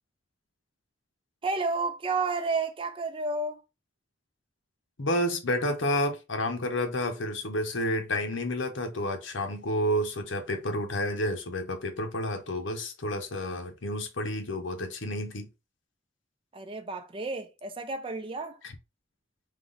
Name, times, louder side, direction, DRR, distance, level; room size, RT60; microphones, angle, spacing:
voice 1, 1.4-3.6 16.5-18.6, right 3 dB, 30° right, 0.5 m, -31 dB
voice 2, 5.0-15.5 18.6-18.7, left 1 dB, 85° left, 1.1 m, -30 dB
3.7 x 3.1 x 3.9 m
head